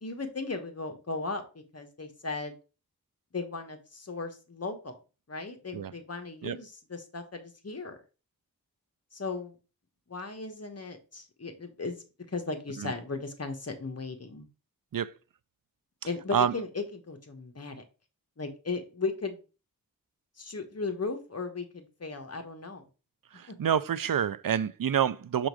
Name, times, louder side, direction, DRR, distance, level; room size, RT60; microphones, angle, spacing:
voice 1, 0.0-2.6 3.3-5.0 5.3-8.0 9.1-9.5 10.1-14.5 16.0-17.8 18.4-19.4 20.4-22.8 23.5-23.6, left 3 dB, 45° left, 1.2 m, -36 dB
voice 2, 23.3-25.5, right 8 dB, 70° right, 0.5 m, -27 dB
6.0 x 3.8 x 4.7 m
wide cardioid pair, 60°, 35 cm